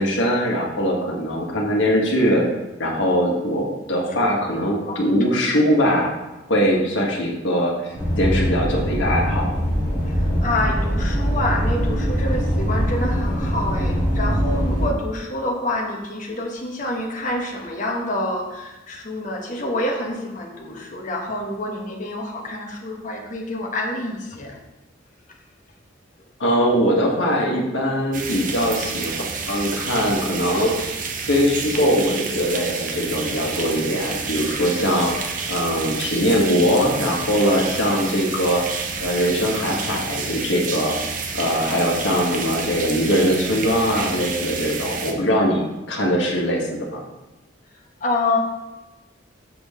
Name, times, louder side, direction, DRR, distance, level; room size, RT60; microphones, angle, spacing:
voice 1, 0.0-2.4 2.8-6.1 6.5-9.5 26.4-30.9 31.3-35.1 35.5-38.6 39.0-41.0 41.3-47.0, equal, 80° left, -1 dB, 1.6 m, -21 dB
sound 1, 7.9-14.9, equal, 20° left, 2.5 m, -22 dB
voice 2, 10.0-24.6 48.0-48.4, left 1 dB, 40° left, 1 dB, 1.2 m, -27 dB
sound 2, 28.1-45.1, right 5 dB, 45° right, 0.8 m, -29 dB
7.0 x 6.2 x 3.7 m, 1.1 s
head